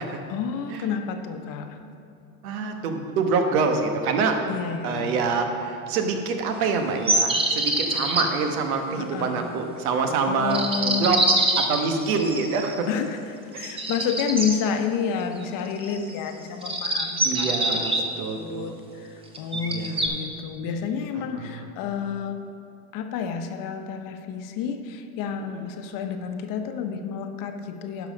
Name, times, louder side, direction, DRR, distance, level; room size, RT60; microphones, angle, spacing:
voice 1, 0.3-1.8 4.5-5.2 9.0-9.7 10.2-11.2 12.9-22.5 22.9-28.1, left 6 dB, 50° left, 6 dB, 0.9 m, -30 dB
voice 2, 2.4-4.4 4.8-11.2 11.6-12.9 17.2-18.7 19.5-19.9 21.4-21.6, right 4 dB, 80° right, 5 dB, 1.3 m, -26 dB
sound 1, 7.1-8.2 10.5-12.8 13.6-14.6 15.8-16.2 16.6-18.0 19.3-20.1, right 2 dB, 15° right, 0.8 m, -24 dB
11.0 x 5.6 x 5.2 m, 2.6 s
supercardioid pair, 120°, 42 cm